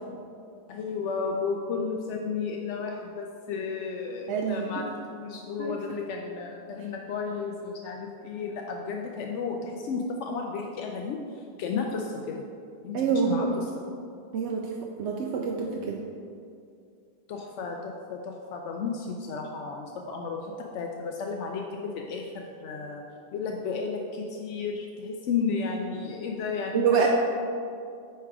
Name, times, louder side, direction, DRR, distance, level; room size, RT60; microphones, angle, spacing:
voice 1, 0.7-12.4 12.8-13.7 17.3-23.0 23.3-27.0, left 5 dB, 85° left, 1 dB, 0.9 m, -33 dB
voice 2, 4.3-4.7 5.6-5.8 12.9-13.5 14.3-14.7 15.0-16.0 26.7-27.1, right 6 dB, 80° right, 0 dB, 0.9 m, -26 dB
9.5 x 3.4 x 4.8 m, 2.4 s
omnidirectional pair, 1.2 m